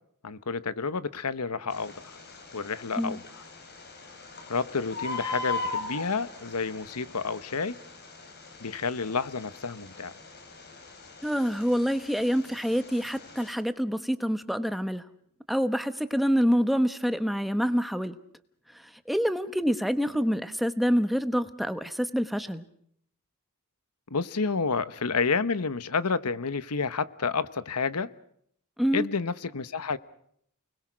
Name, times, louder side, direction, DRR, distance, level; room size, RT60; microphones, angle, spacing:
voice 1, 0.2-1.9 2.5-3.2 4.5-7.8 8.6-10.1 24.1-28.1 28.9-30.0, left 4 dB, 85° left, 1.1 m, -30 dB
Bird, 1.7-13.5, left 3 dB, 50° left, 4.7 m, -40 dB
voice 2, 11.2-15.0 15.5-18.2 18.7-22.6 28.8-29.1, equal, ahead, 1.1 m, -26 dB
29.5 x 21.0 x 6.2 m
head